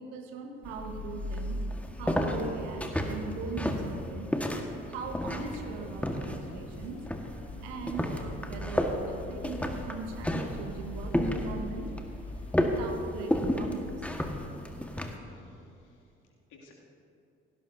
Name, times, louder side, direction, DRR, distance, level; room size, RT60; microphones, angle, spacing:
voice 1, 0.0-1.6 1.9-4.3 4.9-7.0 7.4-11.9 12.5-14.3 14.8-14.9, right 4 dB, 80° right, 4 dB, 1.4 m, -40 dB
sound 1, 0.6-15.2, left 1 dB, 5° left, 1.5 m, -33 dB
sound 2, 5.0-12.9, left 1 dB, 20° left, 3.0 m, -44 dB
voice 2, 14.3-14.8 15.2-16.1 16.5-16.7, left 4 dB, 65° left, -3 dB, 2.6 m, -61 dB
17.0 x 16.5 x 2.7 m, 2.7 s
hypercardioid pair, 45°, 32 cm